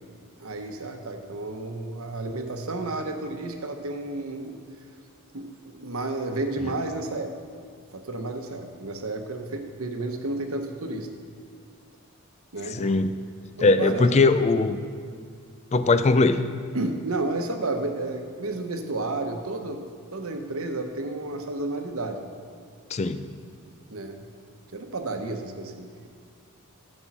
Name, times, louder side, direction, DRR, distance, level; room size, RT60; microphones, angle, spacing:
voice 1, 0.4-4.6 5.3-7.3 7.9-11.1 12.5-12.8 13.6-14.1 16.7-19.8 20.1-22.2 23.9-24.2 24.7-25.9, right 2 dB, 70° right, 5 dB, 1.0 m, -31 dB
voice 2, 12.7-13.1 13.6-14.8 15.7-16.4 22.9-23.3, left 3 dB, 30° left, 11 dB, 0.4 m, -20 dB
14.0 x 5.3 x 6.0 m, 2.1 s
head